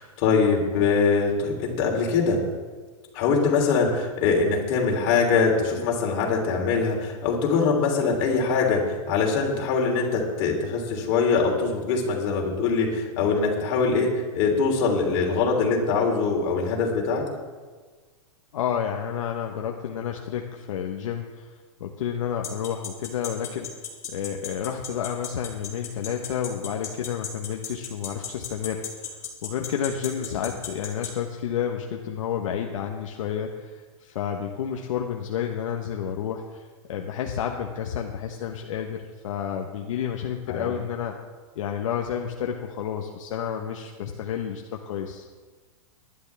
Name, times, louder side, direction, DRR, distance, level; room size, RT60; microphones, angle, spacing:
voice 1, 0.0-2.4 3.1-17.2 30.3-30.4 40.5-40.7, left 4 dB, 40° left, 0 dB, 3.4 m, -23 dB
voice 2, 18.5-21.5 21.8-23.7 24.1-41.1 41.6-45.3, left 8 dB, 65° left, 2 dB, 1.2 m, -30 dB
sound 1, 22.4-31.1, left 8 dB, 15° left, 1.8 m, -34 dB
19.0 x 11.0 x 3.5 m, 1.4 s
hypercardioid pair, 160°, 18 cm